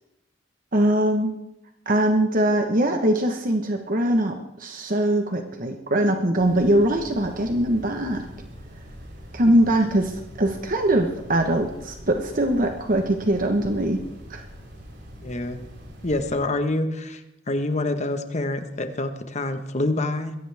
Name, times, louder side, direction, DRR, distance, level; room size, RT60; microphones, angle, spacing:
voice 1, 0.7-1.3 1.9-8.3 9.3-14.0 14.3-14.4, right 1 dB, 50° right, 4 dB, 1.3 m, -22 dB
sound 1, 6.4-16.4, equal, 65° right, 6.4 m, -43 dB
voice 2, 15.2-15.6 16.0-17.2 17.5-20.4, left 2 dB, 40° left, 7 dB, 1.4 m, -26 dB
22.0 x 16.5 x 3.6 m, 0.90 s
head